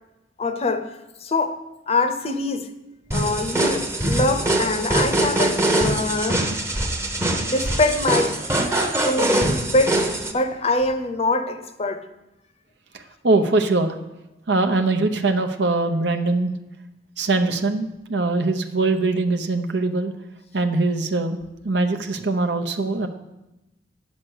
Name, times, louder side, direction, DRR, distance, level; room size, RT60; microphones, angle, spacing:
voice 1, 0.4-0.9 1.2-2.7 3.1-6.5 7.4-8.4 9.0-12.0, left 2 dB, 35° left, 0.7 m, -24 dB
sound 1, 3.1-10.3, right 1 dB, 15° right, 0.8 m, -23 dB
voice 2, 13.2-14.0 14.5-16.5 17.2-20.1 20.5-21.4 21.6-23.1, right 3 dB, 80° right, 0.9 m, -22 dB
8.9 x 7.3 x 6.4 m
head